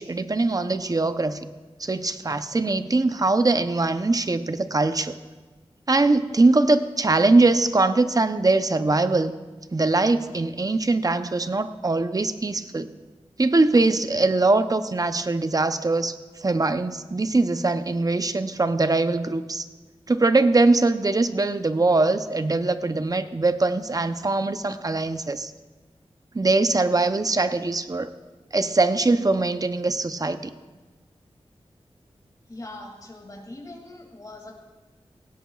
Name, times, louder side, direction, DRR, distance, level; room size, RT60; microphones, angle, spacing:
voice 1, 0.0-1.5 1.8-5.1 5.9-9.3 9.7-12.9 13.4-19.6 20.1-25.5 26.3-28.1 28.5-30.5, right 3 dB, 35° right, 10 dB, 0.6 m, -22 dB
voice 2, 32.5-34.6, left 1 dB, 35° left, 0 dB, 2.5 m, -41 dB
18.0 x 16.5 x 2.4 m, 1.2 s
wide cardioid pair, 75°, 11 cm